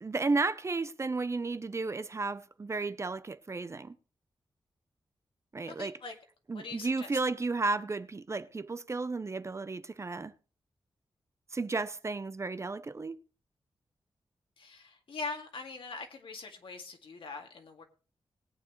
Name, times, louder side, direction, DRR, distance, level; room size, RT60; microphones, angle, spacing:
voice 1, 0.0-3.9 5.5-6.0 6.5-10.3 11.5-13.2, right 3 dB, 35° right, 0.6 m, -33 dB
voice 2, 5.8-6.1 6.5-7.2 14.6-17.8, left 4 dB, 75° left, 2.2 m, -42 dB
19.5 x 8.7 x 3.1 m
wide cardioid pair, 95°, 9 cm